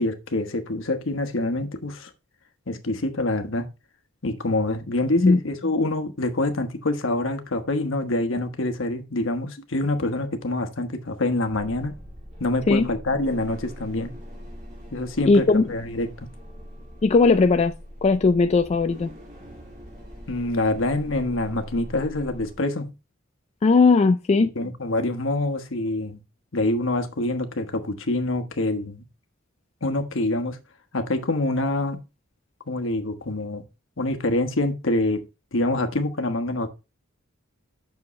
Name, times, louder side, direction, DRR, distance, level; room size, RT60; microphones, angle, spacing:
voice 1, 0.0-2.1 2.7-3.7 4.2-12.0 12.4-14.1 14.9-16.1 20.3-22.9 24.5-26.2 26.5-29.0 29.8-30.6 30.9-32.0 32.7-33.6 34.0-35.2 35.5-36.7, left 2 dB, 65° left, 1.2 m, -26 dB
sound 1, 11.5-22.5, equal, 40° right, 2.6 m, -42 dB
voice 2, 15.3-15.6 17.0-17.7 18.0-19.1 23.6-24.5, left 3 dB, 30° left, 0.3 m, -18 dB
8.6 x 6.3 x 3.1 m
head